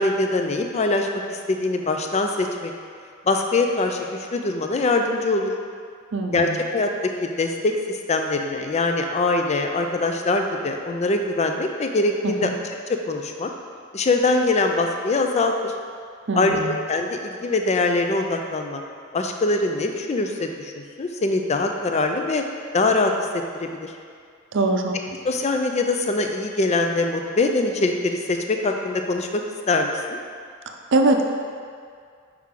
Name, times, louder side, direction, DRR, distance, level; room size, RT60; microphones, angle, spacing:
voice 1, 0.0-2.7 3.3-5.5 6.3-6.9 7.2-12.5 12.9-13.5 13.9-15.7 16.4-18.8 19.1-22.4 22.7-23.9 25.2-29.4 29.7-30.2, left 2 dB, 35° left, 4 dB, 0.4 m, -23 dB
voice 2, 6.1-6.6 12.2-12.5 16.3-16.8 24.5-24.9 30.9-31.2, right 2 dB, 60° right, 4 dB, 0.5 m, -22 dB
5.8 x 4.7 x 3.7 m, 2.2 s
head